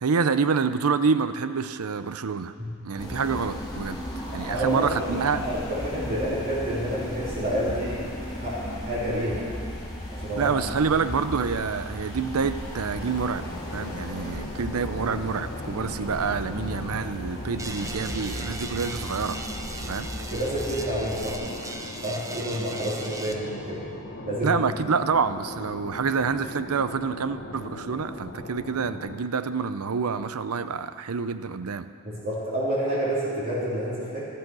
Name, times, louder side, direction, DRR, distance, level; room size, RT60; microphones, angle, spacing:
voice 1, 0.0-2.5 2.8-4.0 4.3-5.4 10.4-13.4 13.7-19.4 19.9-20.1 24.4-31.9, right 5 dB, 80° right, 12 dB, 0.6 m, -27 dB
sound 1, 3.0-21.3, equal, 20° left, 2.5 m, -36 dB
voice 2, 4.5-5.1 5.4-9.5 10.1-10.5 20.3-21.4 21.9-23.8 24.2-24.5 32.0-34.3, equal, 45° right, -10 dB, 3.5 m, -29 dB
sound 2, 12.9-29.2, left 2 dB, 55° left, 1.0 m, -40 dB
sound 3, 17.6-23.3, right 2 dB, 15° right, 0.8 m, -38 dB
14.5 x 12.0 x 6.2 m, 2.5 s
head